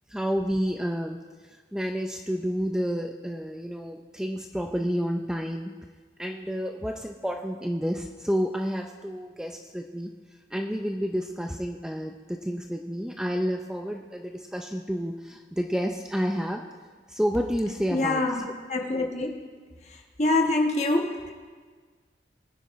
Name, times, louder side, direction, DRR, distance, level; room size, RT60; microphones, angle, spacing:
voice 1, 0.1-1.2 1.7-5.7 6.2-10.1 10.5-16.6 17.1-18.3, equal, 5° right, 3 dB, 0.5 m, -30 dB
voice 2, 17.9-19.4 20.2-21.3, left 2 dB, 40° left, 2 dB, 1.3 m, -25 dB
21.5 x 9.7 x 3.1 m, 1.5 s
head